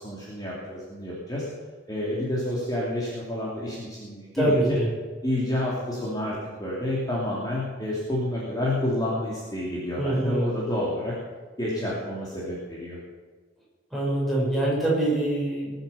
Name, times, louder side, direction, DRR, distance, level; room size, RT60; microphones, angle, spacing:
voice 1, 0.0-1.5 1.9-4.8 5.2-11.1 11.6-13.0, left 1 dB, 20° left, -6 dB, 2.9 m, -29 dB
voice 2, 4.3-4.9 10.0-10.5 13.9-15.7, right 1 dB, ahead, -6 dB, 5.5 m, -24 dB
21.0 x 8.0 x 7.1 m, 1.4 s
head